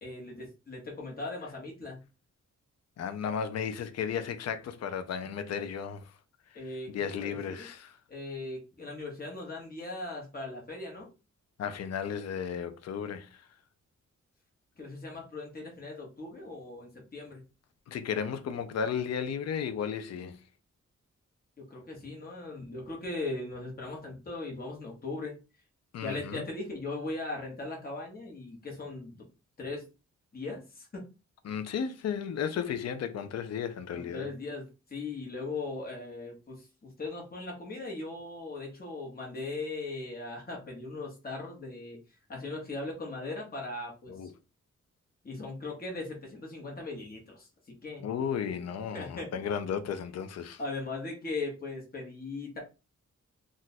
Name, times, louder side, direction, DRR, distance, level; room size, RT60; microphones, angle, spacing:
voice 1, 0.0-2.0 6.5-7.6 8.1-11.1 14.8-17.4 21.6-25.4 26.0-29.2 29.6-29.8 30.3-31.0 33.9-42.0 42.3-44.3 45.2-47.5 47.8-48.0 48.9-49.3 50.6-52.6, left 2 dB, 30° left, 1.1 m, -39 dB
voice 2, 3.0-6.0 6.5-8.0 11.6-13.5 17.9-20.4 25.9-26.4 31.4-34.3 44.1-44.3 48.0-50.6, left 7 dB, 60° left, 0.5 m, -34 dB
2.5 x 2.2 x 4.0 m
wide cardioid pair, 120°, 29 cm